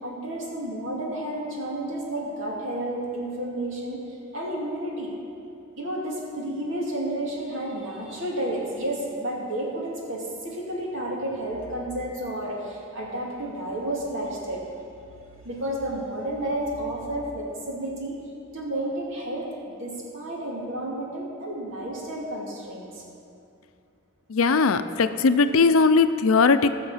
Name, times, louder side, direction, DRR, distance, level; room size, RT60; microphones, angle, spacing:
voice 1, 0.0-4.0 4.3-5.1 5.8-14.6 15.4-18.2 18.5-23.0, right 1 dB, 65° right, -2 dB, 2.5 m, -31 dB
voice 2, 24.3-26.7, left 4 dB, 85° left, 11 dB, 0.5 m, -19 dB
18.5 x 6.5 x 5.6 m, 2.6 s
head